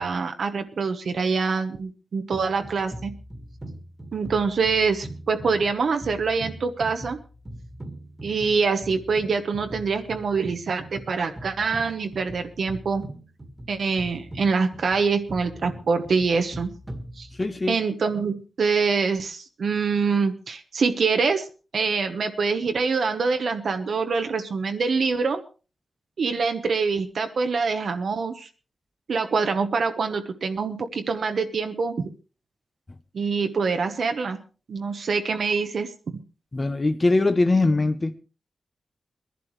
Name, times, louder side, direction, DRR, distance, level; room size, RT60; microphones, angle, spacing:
voice 1, 0.0-3.1 4.1-7.2 8.2-13.0 13.7-16.7 17.2-17.3 17.7-21.5 21.7-25.4 26.2-28.5 29.1-32.1 33.1-34.4 34.7-35.9, right 5 dB, 65° right, 6 dB, 1.1 m, -25 dB
sound 1, 2.3-17.7, right 1 dB, 20° right, 1.8 m, -41 dB
voice 2, 17.4-17.8 36.5-38.1, left 2 dB, 20° left, 9 dB, 0.8 m, -21 dB
22.0 x 11.0 x 3.2 m, 0.35 s
wide cardioid pair, 160°, 0 cm